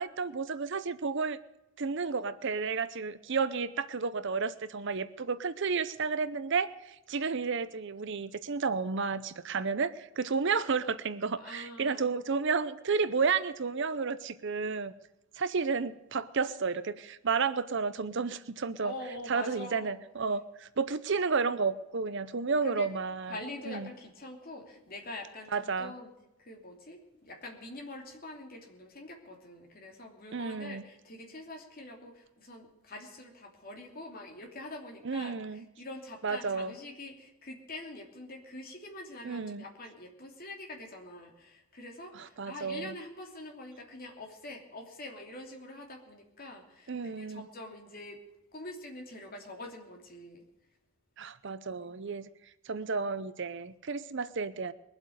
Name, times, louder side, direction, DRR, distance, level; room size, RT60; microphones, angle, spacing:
voice 1, 0.0-1.4 1.8-14.9 15.4-18.9 19.3-23.4 23.7-23.9 25.5-25.9 30.3-30.8 35.0-35.6 36.2-36.7 39.2-39.6 42.1-42.9 46.9-47.5 51.2-52.3 52.7-54.7, right 5 dB, 55° right, 14 dB, 0.6 m, -32 dB
voice 2, 11.4-12.1 18.8-20.0 22.6-22.9 23.3-26.1 26.4-48.2 48.5-50.4, left 2 dB, 40° left, 1 dB, 3.0 m, -45 dB
22.0 x 8.0 x 6.5 m, 0.95 s
head